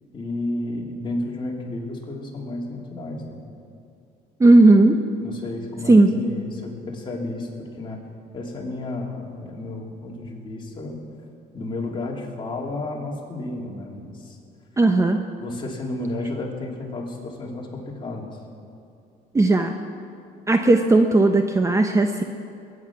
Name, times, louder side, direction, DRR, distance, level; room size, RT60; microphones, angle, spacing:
voice 1, 0.1-3.4 5.2-8.0 8.3-11.0 11.5-14.4 15.4-18.4, left 2 dB, 30° left, -1 dB, 3.0 m, -32 dB
voice 2, 4.4-5.0 5.9-6.1 14.8-15.2 19.3-19.7 20.5-22.2, right 2 dB, 15° right, 5 dB, 0.8 m, -15 dB
21.5 x 9.8 x 6.0 m, 2.6 s
cardioid pair, 110°, 17 cm